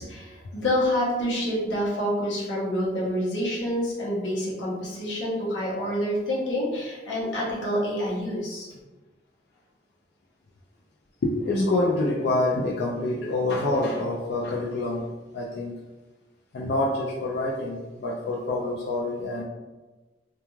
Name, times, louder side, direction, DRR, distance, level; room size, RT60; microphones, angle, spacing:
voice 1, 0.1-8.7, equal, 85° left, -6 dB, 0.8 m, -27 dB
voice 2, 11.2-15.8 16.5-19.4, left 2 dB, 60° left, -4 dB, 0.3 m, -26 dB
3.0 x 2.3 x 2.2 m, 1.2 s
head